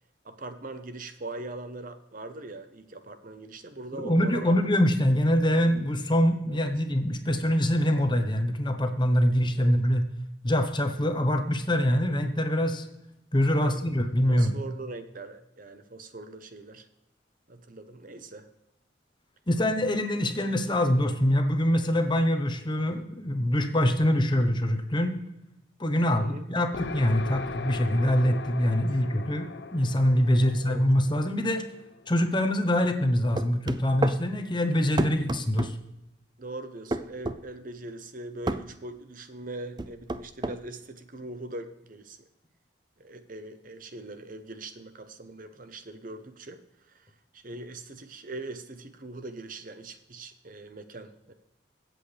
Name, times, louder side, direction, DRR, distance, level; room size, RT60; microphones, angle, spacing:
voice 1, 0.2-4.5 6.5-6.6 9.6-9.7 13.6-13.8 14.3-16.9 17.5-18.5 26.0-26.4 28.7-29.0 30.3-30.8 36.4-42.2 43.0-46.6 46.9-51.3, right 2 dB, 45° right, 9 dB, 0.9 m, -41 dB
voice 2, 3.9-10.1 10.4-12.8 13.3-14.5 19.5-25.2 25.8-29.5 29.7-31.6 32.1-35.8, equal, 25° left, 6 dB, 1.0 m, -24 dB
sound 1, 26.7-32.3, left 4 dB, 60° left, 0.7 m, -40 dB
sound 2, 33.4-34.2 35.0-35.7 36.9-37.4 38.5-38.7 39.8-40.6, right 2 dB, 20° right, 0.4 m, -29 dB
22.5 x 7.9 x 3.4 m, 0.92 s
head